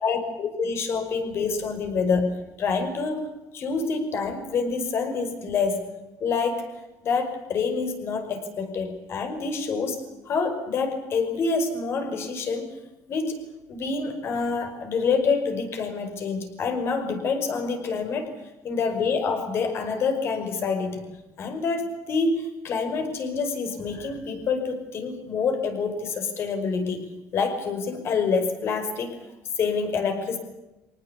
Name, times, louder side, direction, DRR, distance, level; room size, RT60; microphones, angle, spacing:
voice 1, 0.0-3.3 3.5-5.8 6.2-6.7 7.0-10.0 10.3-12.7 13.1-13.4 13.7-18.3 18.6-21.0 21.4-29.2 29.6-30.4, left 4 dB, 40° left, 7 dB, 5.5 m, -27 dB
25.5 x 19.0 x 8.5 m, 1.0 s
cardioid pair, 165°, 6 cm